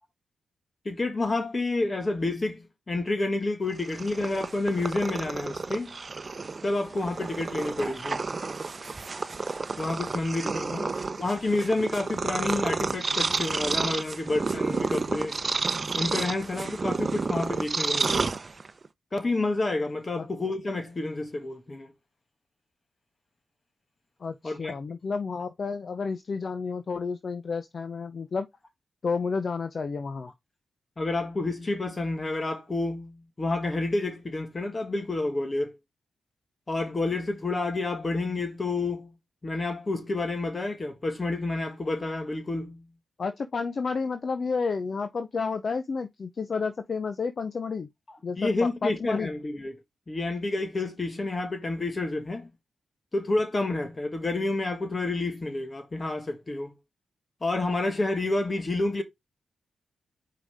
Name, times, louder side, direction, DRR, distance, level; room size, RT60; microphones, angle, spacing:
voice 1, 0.9-6.0 6.6-8.2 9.8-10.9 11.2-15.4 15.9-18.3 19.1-21.9 24.4-24.7 31.0-35.8 36.7-39.1 39.4-42.9 48.4-49.8 50.1-52.5 53.1-56.7 57.4-59.0, left 2 dB, 35° left, 1.7 m, -29 dB
Purr, 3.7-18.9, right 4 dB, 45° right, 0.7 m, -31 dB
voice 2, 24.2-28.5 29.0-30.3 43.2-47.9 48.2-49.3, left 4 dB, 55° left, 0.6 m, -31 dB
5.7 x 4.9 x 3.5 m
supercardioid pair, 50°, 0 cm